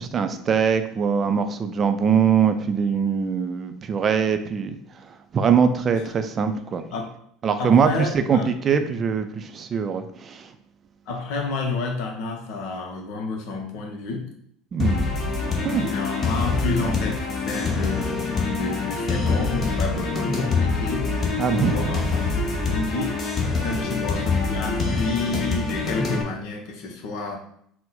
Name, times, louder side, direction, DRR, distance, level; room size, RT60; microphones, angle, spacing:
voice 1, 0.0-6.8 7.4-10.5 14.7-15.1 15.6-15.9 21.4-22.0, right 6 dB, 35° right, 8 dB, 0.4 m, -22 dB
voice 2, 7.6-8.5 11.1-14.3 15.7-21.1 21.7-22.3 22.7-27.4, left 3 dB, 60° left, 2 dB, 0.7 m, -30 dB
sound 1, 14.8-26.2, left 4 dB, 35° left, 0.9 m, -25 dB
4.0 x 2.1 x 3.8 m, 0.68 s
figure-of-eight pair, 70°, 0 cm